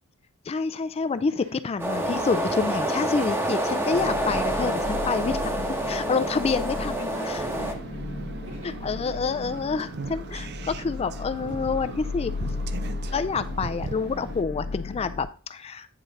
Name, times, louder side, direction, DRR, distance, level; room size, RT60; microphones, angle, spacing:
voice 1, 0.4-7.4 8.6-12.6 13.1-15.9, left 5 dB, 30° left, 12 dB, 0.3 m, -28 dB
sound 1, 1.8-7.7, right 1 dB, 10° right, 0.9 m, -27 dB
sound 2, 3.9-15.2, left 3 dB, 45° left, 0.9 m, -35 dB
voice 2, 6.8-8.7, right 1 dB, 70° right, 0 dB, 3.9 m, -44 dB
sound 3, 7.4-14.4, right 4 dB, 55° right, 0.5 m, -39 dB
9.0 x 3.8 x 4.0 m, 0.39 s
head